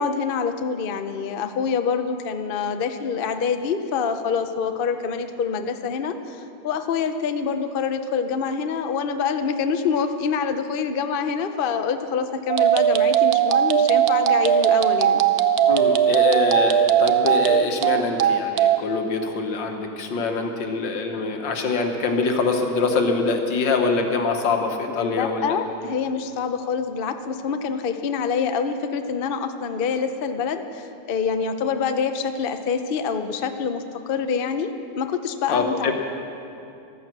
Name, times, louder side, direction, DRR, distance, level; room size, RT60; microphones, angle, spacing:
voice 1, 0.0-15.2 24.9-35.9, left 6 dB, 85° left, 8 dB, 0.4 m, -26 dB
sound 1, 12.5-18.8, right 10 dB, 65° right, 0.9 m, -18 dB
voice 2, 15.6-25.6 35.5-35.9, left 4 dB, 70° left, 4 dB, 1.9 m, -24 dB
15.0 x 13.0 x 6.1 m, 2.7 s
omnidirectional pair, 2.1 m